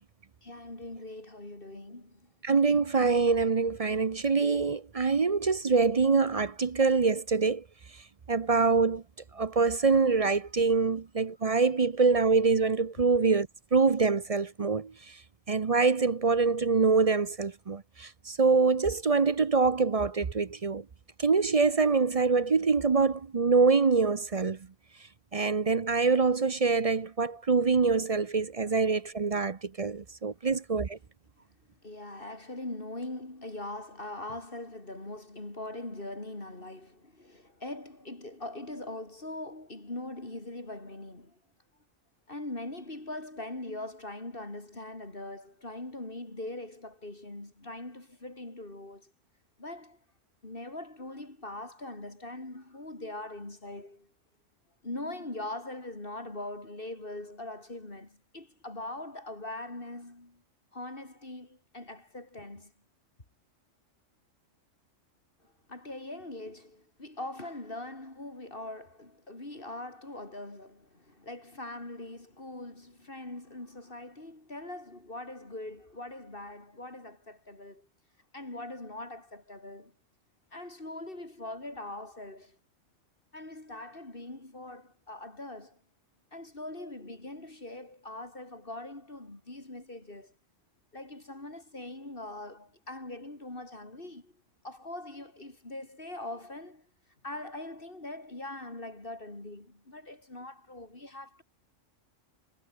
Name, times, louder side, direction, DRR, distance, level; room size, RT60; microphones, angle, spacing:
voice 1, 0.4-2.3 10.9-11.0 28.6-28.7 30.4-30.5 31.8-41.4 42.3-49.1 49.6-50.0 50.4-54.1 54.8-60.4 60.7-62.7 65.4-77.9 78.3-79.9 80.5-82.6 83.3-85.8 86.3-90.3 90.9-94.3 94.6-96.9 97.2-101.4, left 2 dB, 45° left, 4.4 m, -42 dB
voice 2, 2.4-7.6 8.3-9.0 9.3-15.2 15.5-20.8 21.2-24.6 25.3-31.0, right 4 dB, 35° right, 0.6 m, -25 dB
omnidirectional pair, 1.3 m